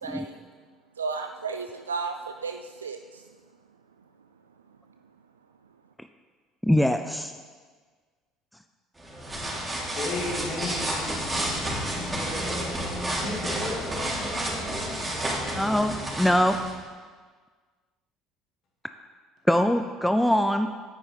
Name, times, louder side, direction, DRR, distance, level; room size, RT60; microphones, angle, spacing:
voice 1, 0.0-0.4 1.0-3.2, right 4 dB, 80° right, 6 dB, 0.3 m, -33 dB
voice 2, 6.6-7.3 15.5-16.6 19.5-20.7, equal, 5° left, 8 dB, 0.4 m, -22 dB
sound 1, 9.0-16.7, right 1 dB, 15° right, 3.1 m, -30 dB
voice 3, 9.9-12.6 13.2-15.7, left 2 dB, 50° left, -3 dB, 2.8 m, -36 dB
9.6 x 9.2 x 4.1 m, 1.5 s
figure-of-eight pair, 60°, 0 cm